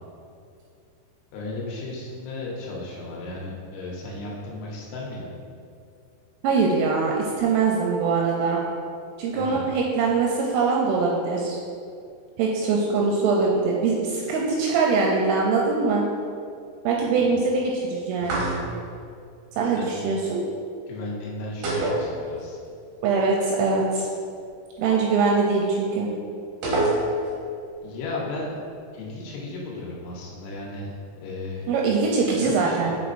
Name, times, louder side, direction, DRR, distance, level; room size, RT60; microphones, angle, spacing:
voice 1, 1.3-5.3 9.3-9.7 17.2-17.6 19.6-20.0 20.9-22.6 27.8-28.5 28.9-31.7 32.3-33.0, left 2 dB, 85° left, -3 dB, 3.6 m, -35 dB
voice 2, 6.4-8.6 9.2-11.6 12.4-16.0 16.8-18.4 19.6-20.4 23.0-24.1 24.8-26.1 31.7-32.9, right 4 dB, 85° right, -2 dB, 2.9 m, -22 dB
sound 1, 18.2-18.9 21.6-22.7 22.9-23.0 26.6-27.4, right 1 dB, 65° right, 2.3 m, -25 dB
6.3 x 6.0 x 2.5 m, 2.4 s
omnidirectional pair, 5.8 m